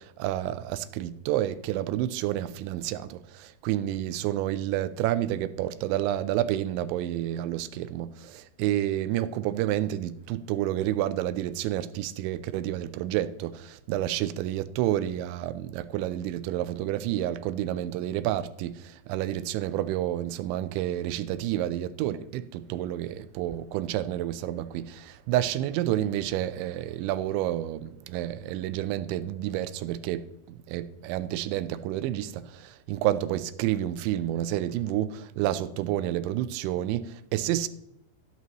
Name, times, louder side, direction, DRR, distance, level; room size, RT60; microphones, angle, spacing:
voice 1, 0.0-37.7, right 13 dB, 85° right, 2.9 m, -29 dB
14.0 x 11.0 x 3.0 m
omnidirectional pair, 5.4 m